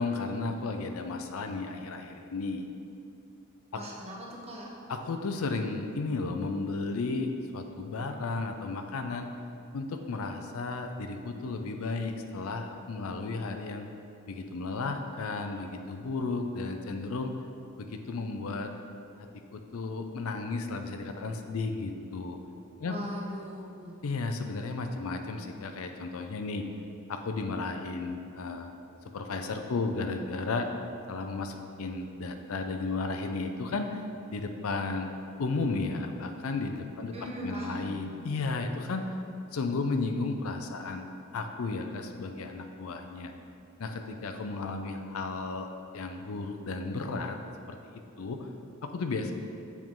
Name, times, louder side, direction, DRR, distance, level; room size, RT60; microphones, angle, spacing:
voice 1, 0.0-2.7 3.7-3.8 4.9-9.3 9.7-13.9 14.3-17.3 17.8-18.7 19.2-22.4 22.8-23.0 24.0-26.7 27.1-28.7 29.1-30.7 31.1-34.0 34.3-35.1 35.4-39.1 39.5-43.3 43.8-45.7 45.9-47.4 47.7-48.5 48.8-49.3, left 3 dB, 70° left, 6 dB, 0.5 m, -34 dB
voice 2, 3.8-4.2 4.4-4.7 22.8-24.0 37.1-38.0, equal, 30° right, -4 dB, 1.0 m, -39 dB
7.1 x 4.5 x 3.7 m, 2.5 s
head